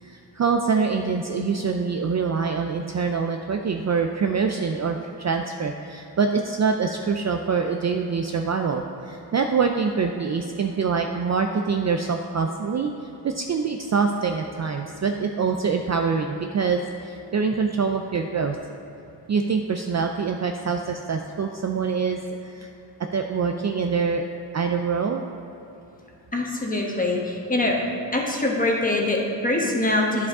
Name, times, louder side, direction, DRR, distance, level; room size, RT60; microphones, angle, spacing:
voice 1, 0.0-18.6 19.3-22.7 23.1-24.2 24.5-25.2, right 5 dB, 40° right, 3 dB, 0.4 m, -25 dB
voice 2, 26.3-27.8 28.1-30.3, left 2 dB, 20° left, -2 dB, 1.2 m, -23 dB
10.5 x 4.7 x 3.6 m, 2.8 s
wide cardioid pair, 75°, 44 cm